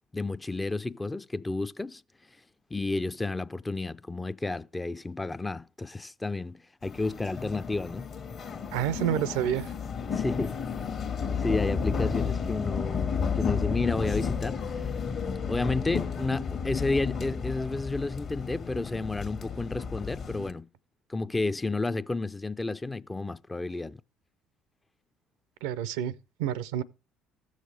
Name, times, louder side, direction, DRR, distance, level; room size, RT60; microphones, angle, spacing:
voice 1, 0.1-2.0 2.7-8.1 10.1-10.6 11.4-15.0 15.5-20.7 21.1-24.0, left 3 dB, 15° left, 0.4 m, -31 dB
sound 1, 6.8-20.5, left 6 dB, 50° left, 1.3 m, -32 dB
voice 2, 8.7-9.7 25.6-26.8, right 10 dB, 70° right, 0.4 m, -29 dB
15.0 x 6.4 x 3.3 m
hypercardioid pair, 60°, 0 cm